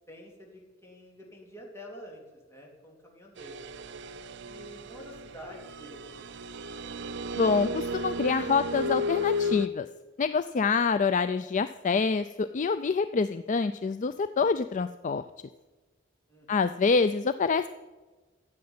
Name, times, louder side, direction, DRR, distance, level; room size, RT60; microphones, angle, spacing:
voice 1, 0.1-3.6 4.4-6.3 16.3-16.8, equal, 15° left, -1 dB, 3.3 m, -48 dB
sound 1, 3.4-9.7, left 2 dB, 60° right, 0.6 m, -33 dB
voice 2, 7.4-9.9 10.2-15.2 16.5-17.7, left 4 dB, 40° left, 12 dB, 0.4 m, -26 dB
13.5 x 7.6 x 9.6 m, 1.2 s
head